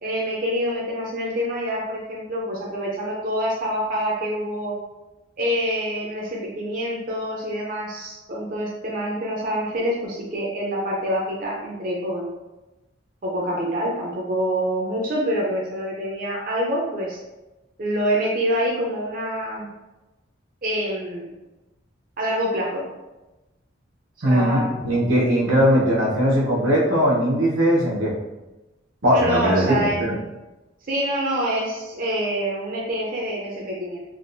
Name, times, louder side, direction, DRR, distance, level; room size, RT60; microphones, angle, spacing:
voice 1, 0.0-4.7 5.4-12.3 13.2-17.2 17.8-19.7 20.6-21.3 22.2-22.9 24.2-24.7 25.5-25.6 29.1-30.2 30.9-34.0, equal, 45° right, -4 dB, 0.5 m, -26 dB
voice 2, 24.2-28.1 29.0-30.1, equal, 85° right, -4 dB, 0.9 m, -19 dB
3.4 x 2.3 x 2.6 m, 1.0 s
head